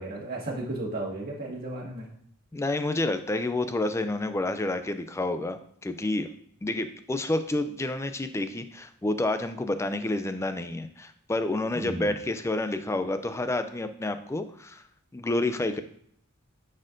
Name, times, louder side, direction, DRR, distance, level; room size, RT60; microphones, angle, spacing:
voice 1, 0.0-2.1 11.8-12.1, right 2 dB, 45° right, -3 dB, 1.7 m, -34 dB
voice 2, 2.5-6.3 6.6-14.8 15.1-15.8, left 2 dB, 10° left, 9 dB, 0.3 m, -29 dB
9.7 x 4.3 x 2.6 m, 0.68 s
head